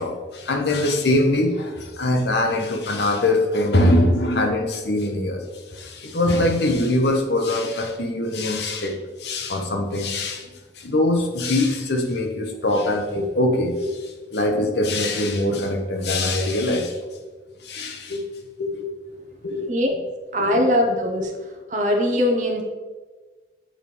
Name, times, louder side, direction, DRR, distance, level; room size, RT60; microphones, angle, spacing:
voice 1, 0.0-17.0 17.6-18.2 18.6-19.2 19.4-19.7 20.4-20.7, left 1 dB, 65° left, 3 dB, 0.9 m, -23 dB
voice 2, 20.3-21.3 21.7-22.6, left 1 dB, 40° right, 2 dB, 0.8 m, -21 dB
7.5 x 3.4 x 4.5 m, 1.3 s
head